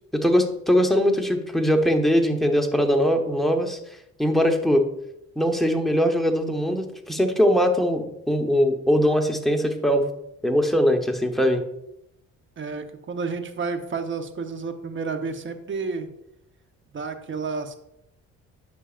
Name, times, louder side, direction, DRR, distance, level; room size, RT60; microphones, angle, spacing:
voice 1, 0.1-3.8 4.2-4.9 5.4-10.0 10.4-11.6, equal, ahead, 3 dB, 1.0 m, -21 dB
voice 2, 12.6-16.1 16.9-17.8, right 4 dB, 40° right, 7 dB, 1.0 m, -30 dB
10.0 x 6.2 x 2.5 m, 0.81 s
cardioid pair, 90°, 30 cm